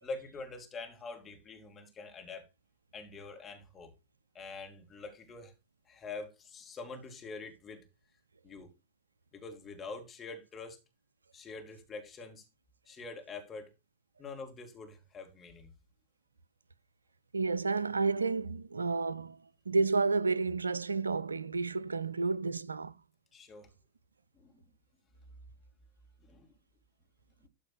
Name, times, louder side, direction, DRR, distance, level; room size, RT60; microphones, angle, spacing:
voice 1, 0.0-2.5 2.9-3.9 4.3-5.5 5.9-7.9 8.4-8.7 9.3-10.8 11.3-12.5 12.9-13.7 14.2-15.7 23.3-23.7 24.3-24.6 26.2-26.5 27.4-27.5, left 3 dB, 20° left, 2.8 m, -45 dB
voice 2, 17.3-19.4 19.7-22.9, right 4 dB, 75° right, 0.5 m, -31 dB
12.5 x 4.2 x 4.7 m
figure-of-eight pair, 90°, 0 cm